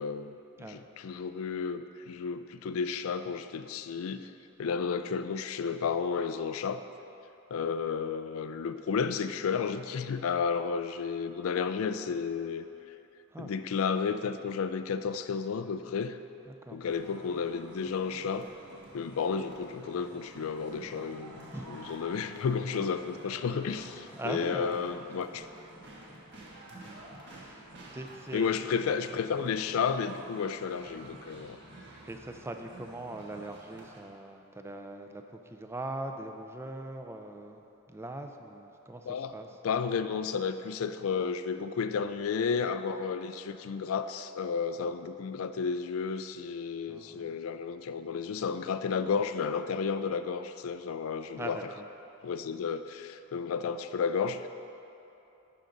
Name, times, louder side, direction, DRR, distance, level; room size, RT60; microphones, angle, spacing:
voice 1, 0.0-4.3 4.6-6.8 7.5-12.6 13.4-16.2 16.7-18.5 18.9-25.5 28.3-31.6 39.0-39.3 39.6-51.6 52.2-54.5, left 6 dB, 75° left, 10 dB, 0.4 m, -32 dB
voice 2, 16.5-16.8 21.5-21.7 24.1-24.8 25.4-25.5 26.7-27.1 27.3-27.6 27.9-28.5 32.0-37.6 37.9-39.5 46.9-47.3 51.4-51.9, right 2 dB, 10° right, 5 dB, 0.4 m, -41 dB
sound 1, 16.8-34.0, right 1 dB, 55° right, 1.4 m, -50 dB
11.5 x 3.8 x 5.2 m, 2.9 s
head